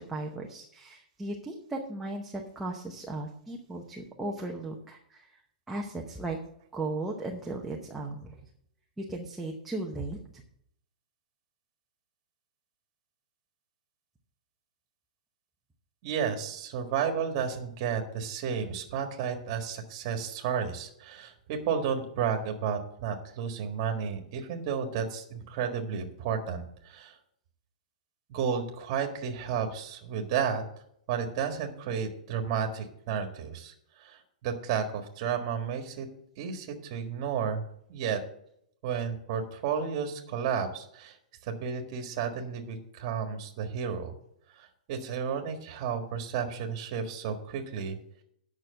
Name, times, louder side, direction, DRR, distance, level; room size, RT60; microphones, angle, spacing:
voice 1, 0.0-5.3 5.7-6.4 6.7-8.4 9.0-10.2, right 2 dB, 5° right, -1 dB, 0.9 m, -36 dB
voice 2, 16.0-27.2 28.3-30.6 31.1-36.1 36.4-37.6 37.9-38.2 38.8-41.2 41.4-44.1 44.5-48.0, right 7 dB, 35° right, 4 dB, 1.6 m, -32 dB
9.2 x 6.1 x 7.7 m, 0.69 s
hypercardioid pair, 170°, 5 cm